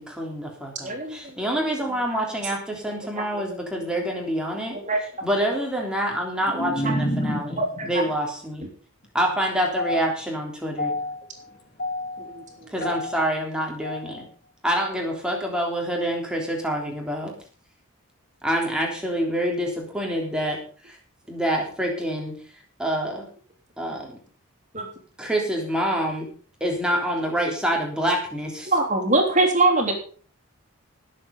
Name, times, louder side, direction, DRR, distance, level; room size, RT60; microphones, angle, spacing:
voice 1, 0.0-4.8 5.2-7.6 7.8-8.6 9.1-10.9 12.7-14.2 14.6-17.3 18.4-20.6 20.8-21.0 21.3-22.3 22.8-23.3 23.8-24.1 25.2-26.3 26.6-28.7, equal, 5° right, 0 dB, 3.4 m, -26 dB
voice 2, 0.8-1.2 2.8-2.9 3.2-3.4 4.7-5.0 6.8-6.9 24.7-24.9 28.6-29.9, right 2 dB, 35° right, 2 dB, 3.2 m, -22 dB
voice 3, 6.1-7.9 9.7-10.0 10.8-13.2 13.8-14.2, left 1 dB, 45° left, 2 dB, 3.2 m, -30 dB
19.0 x 7.6 x 5.3 m, 0.43 s
head